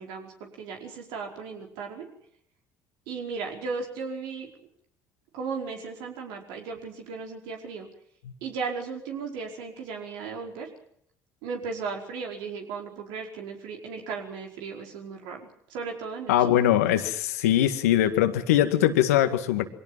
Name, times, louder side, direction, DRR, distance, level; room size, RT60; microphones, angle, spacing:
voice 1, 0.0-2.1 3.1-4.5 5.3-7.9 8.4-10.7 11.4-16.3, right 5 dB, 75° right, 2 dB, 5.0 m, -36 dB
voice 2, 16.3-19.6, left 11 dB, 85° left, 8 dB, 2.0 m, -22 dB
23.5 x 17.5 x 7.5 m, 0.69 s
hypercardioid pair, 60°, 8 cm